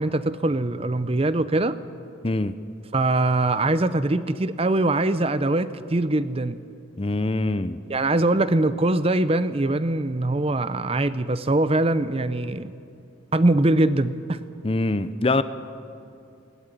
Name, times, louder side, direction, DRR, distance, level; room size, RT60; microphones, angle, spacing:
voice 1, 0.0-1.7 2.9-6.6 7.9-12.7 13.3-14.4, right 2 dB, 30° right, 14 dB, 0.6 m, -22 dB
voice 2, 2.2-2.5 7.0-7.8 14.6-15.4, left 2 dB, 30° left, 13 dB, 0.6 m, -24 dB
20.5 x 18.0 x 9.9 m, 2.5 s
head